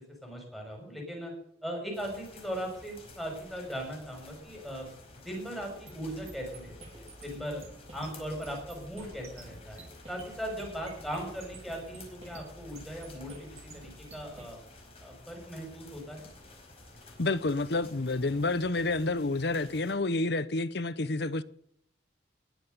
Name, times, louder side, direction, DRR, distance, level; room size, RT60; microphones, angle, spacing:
voice 1, 0.2-1.3 1.6-4.9 5.1-7.6 7.9-14.6 15.0-16.3, equal, ahead, 6.2 m, -39 dB
sound 1, 1.9-19.9, left 2 dB, 30° left, 4.9 m, -52 dB
sound 2, 5.9-14.5, right 2 dB, 35° right, 4.1 m, -50 dB
voice 2, 17.2-21.4, left 2 dB, 60° left, 0.8 m, -29 dB
20.5 x 8.0 x 6.8 m
head